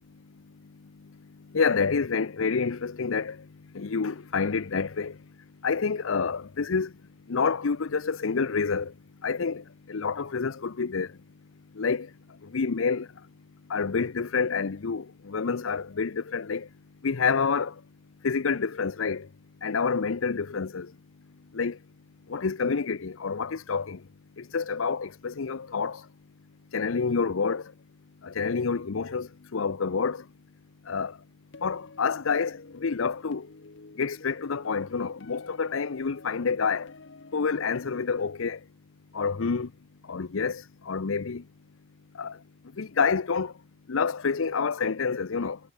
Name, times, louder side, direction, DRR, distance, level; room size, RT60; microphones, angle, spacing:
voice 1, 0.6-5.3 5.6-6.9 7.3-8.9 9.2-11.2 11.7-13.1 13.7-16.7 17.0-17.8 18.2-19.3 19.6-20.9 21.5-21.8 22.3-24.1 24.4-26.1 26.7-27.7 28.2-30.3 30.9-31.2 31.6-33.5 34.0-36.9 37.3-38.6 39.1-39.7 40.0-41.5 42.1-42.4 42.7-43.5 43.9-45.6, left 5 dB, 75° left, 0.6 m, -28 dB
sound 1, 31.5-38.3, left 3 dB, 60° left, 1.0 m, -50 dB
head